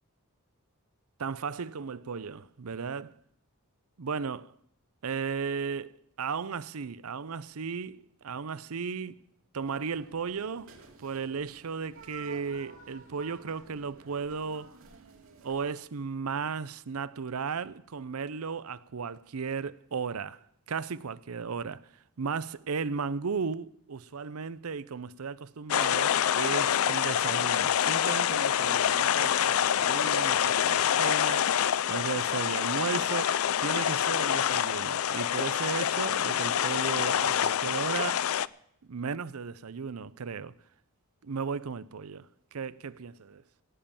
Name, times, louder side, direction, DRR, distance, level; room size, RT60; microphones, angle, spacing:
voice 1, 1.2-3.1 4.0-4.4 5.0-9.2 9.5-10.7 11.0-14.7 15.4-20.4 20.7-21.9 22.2-38.3 38.9-40.5 41.2-42.3 42.5-43.4, right 5 dB, 85° right, 0.6 m, -35 dB
sound 1, 9.6-15.7, right 4 dB, 65° right, 2.4 m, -52 dB
sound 2, 25.7-38.5, left 9 dB, 75° left, 0.4 m, -26 dB
18.0 x 7.6 x 7.1 m
head